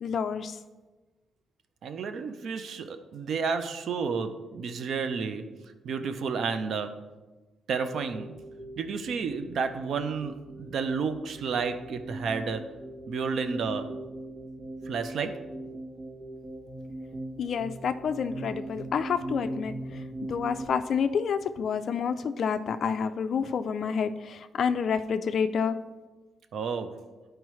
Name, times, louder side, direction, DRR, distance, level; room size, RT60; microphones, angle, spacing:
voice 1, 0.0-0.6 17.4-19.7 20.3-25.8, left 6 dB, 55° left, 8 dB, 0.4 m, -28 dB
voice 2, 1.8-7.1 7.7-8.4 8.8-12.8 13.1-13.9 14.9-15.5 26.5-27.0, right 5 dB, 65° right, 9 dB, 0.5 m, -31 dB
sound 1, 8.0-20.7, right 1 dB, 40° right, 1.1 m, -40 dB
12.0 x 4.5 x 3.1 m, 1.2 s
cardioid pair, 120°, 0 cm